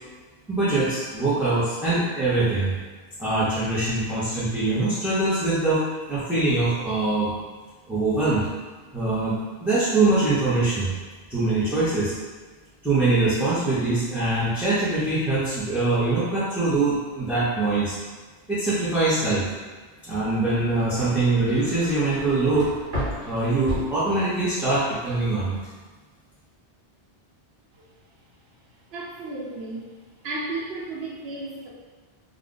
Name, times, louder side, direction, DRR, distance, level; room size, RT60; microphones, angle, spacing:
voice 1, 0.5-2.7 3.2-7.3 7.9-8.4 8.9-9.4 9.6-10.9 11.3-12.1 12.8-18.0 18.5-19.4 20.1-22.7 23.2-25.5, right 2 dB, ahead, -13 dB, 0.7 m, -23 dB
sound 1, 20.5-24.6 25.0-25.5, equal, 60° right, 1.1 m, -35 dB
voice 2, 28.9-29.9 30.2-31.7, right 2 dB, 80° right, -7 dB, 0.9 m, -33 dB
2.4 x 2.4 x 3.8 m, 1.4 s
omnidirectional pair, 1.0 m